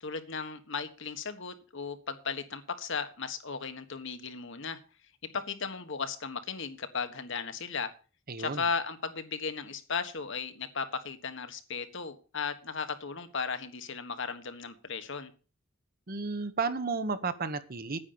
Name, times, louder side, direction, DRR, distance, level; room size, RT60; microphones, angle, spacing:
voice 1, 0.0-4.8 5.3-7.9 8.4-15.3, left 5 dB, 65° left, 8 dB, 1.5 m, -36 dB
voice 2, 8.3-8.6 16.1-18.0, right 4 dB, 45° right, 11 dB, 1.1 m, -32 dB
9.8 x 9.2 x 6.9 m, 0.37 s
head